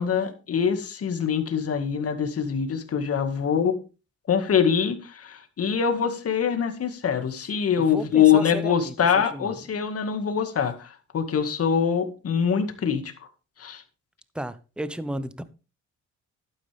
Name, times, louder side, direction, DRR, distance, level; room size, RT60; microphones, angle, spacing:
voice 1, 0.0-3.8 4.3-13.3 13.6-13.8, left 7 dB, 50° left, 2.0 m, -24 dB
voice 2, 7.8-8.9 9.3-9.5 14.3-15.4, right 1 dB, 5° right, 0.9 m, -33 dB
11.5 x 9.5 x 3.5 m
cardioid pair, 90°, 30 cm